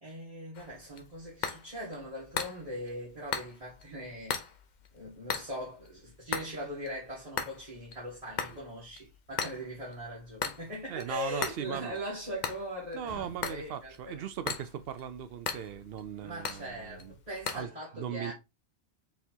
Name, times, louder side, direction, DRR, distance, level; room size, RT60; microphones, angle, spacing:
voice 1, 0.0-4.4 4.9-14.2 16.2-18.3, equal, 35° right, 1.7 m, -41 dB
sound 1, 0.5-17.6, left 6 dB, 50° left, 0.7 m, -40 dB
voice 2, 10.9-12.0 12.9-17.1 17.5-17.7 17.9-18.3, right 9 dB, 70° right, 0.8 m, -38 dB
4.3 x 3.5 x 2.8 m
omnidirectional pair, 1.1 m